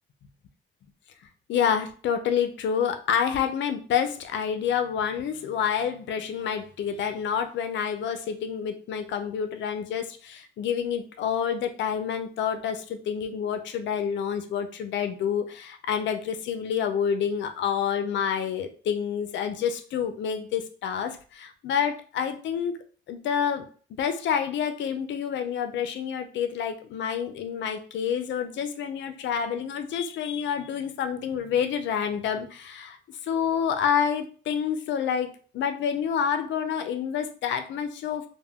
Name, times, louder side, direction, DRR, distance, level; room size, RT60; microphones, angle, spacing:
voice 1, 1.5-22.7 23.1-23.7 23.9-33.0 33.2-38.3, left 8 dB, 70° left, 8 dB, 0.5 m, -28 dB
2.2 x 2.2 x 3.5 m, 0.42 s
cardioid pair, 90°, 20 cm